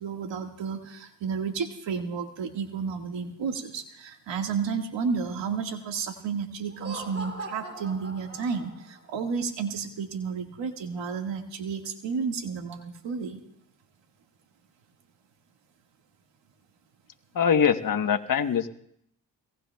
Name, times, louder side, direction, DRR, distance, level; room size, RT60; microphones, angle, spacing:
voice 1, 0.0-13.4, right 5 dB, 80° right, 4 dB, 1.9 m, -32 dB
Laughter, 6.6-9.0, right 2 dB, 30° right, 2.8 m, -40 dB
voice 2, 17.3-18.7, left 7 dB, 50° left, 6 dB, 1.1 m, -23 dB
23.5 x 18.5 x 2.3 m, 0.71 s
supercardioid pair, 50°, 43 cm